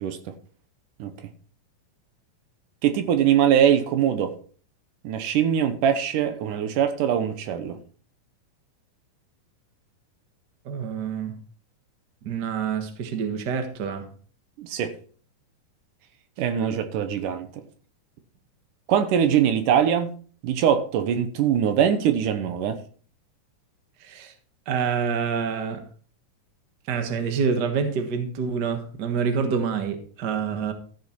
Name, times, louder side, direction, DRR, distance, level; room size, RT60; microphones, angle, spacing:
voice 1, 2.8-4.3 5.0-7.8 14.6-14.9 16.4-17.5 18.9-20.1 20.4-22.8, right 9 dB, 75° right, 2.6 m, -22 dB
voice 2, 10.6-11.4 12.2-14.1 24.0-24.3 24.7-25.8 26.9-30.7, right 6 dB, 45° right, 1.4 m, -27 dB
13.5 x 6.9 x 4.5 m
omnidirectional pair, 3.8 m